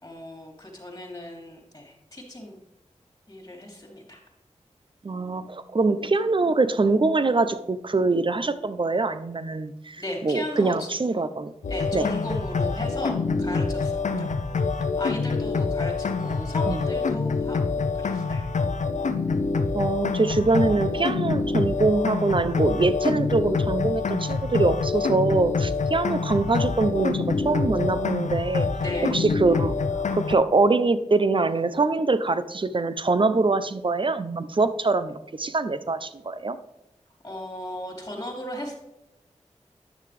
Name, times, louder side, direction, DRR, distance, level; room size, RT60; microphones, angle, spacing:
voice 1, 0.0-2.6 3.3-4.2 10.0-10.9 11.7-14.3 14.8-18.5 28.8-29.2 37.2-38.7, left 1 dB, 25° left, 0 dB, 3.2 m, -36 dB
voice 2, 5.0-11.5 11.9-12.1 14.1-14.3 16.7-16.8 19.7-28.7 29.1-36.6, right 3 dB, 40° right, 13 dB, 0.7 m, -24 dB
sound 1, 11.6-30.4, left 4 dB, 75° left, 0.7 m, -26 dB
9.8 x 6.5 x 3.4 m, 0.91 s
cardioid pair, 40°, 13 cm